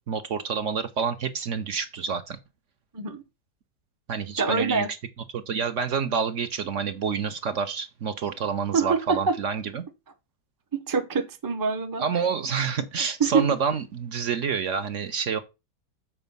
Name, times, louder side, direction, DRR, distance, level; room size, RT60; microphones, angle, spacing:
voice 1, 0.1-2.4 4.1-4.9 5.3-9.8 12.0-15.4, right 6 dB, 55° right, 1.0 m, -28 dB
voice 2, 4.4-4.9 8.7-9.4 10.7-12.0 13.2-13.4, right 5 dB, 20° right, 0.5 m, -25 dB
7.2 x 4.6 x 5.4 m
omnidirectional pair, 1.7 m